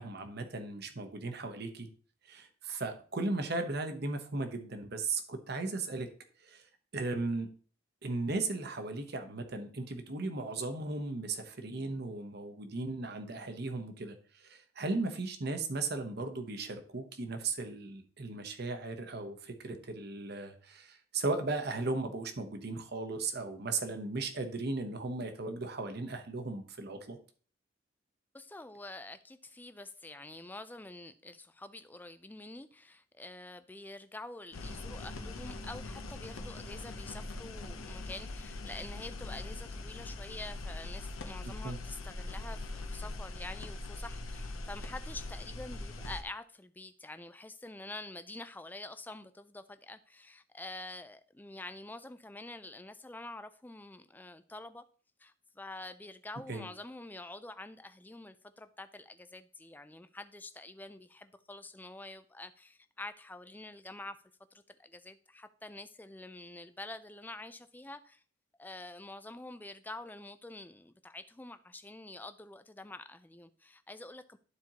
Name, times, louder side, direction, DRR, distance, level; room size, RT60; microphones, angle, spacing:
voice 1, 0.0-1.9 2.3-6.1 6.4-6.6 6.9-7.5 8.0-27.2 41.4-41.8 56.5-56.6, right 3 dB, 50° right, 0.9 m, -36 dB
voice 2, 28.3-54.8 55.2-64.2 64.5-68.2 68.6-74.4, left 2 dB, 10° left, 0.3 m, -47 dB
sound 1, 34.5-46.2, left 2 dB, 80° left, 0.8 m, -42 dB
12.5 x 4.4 x 2.9 m
head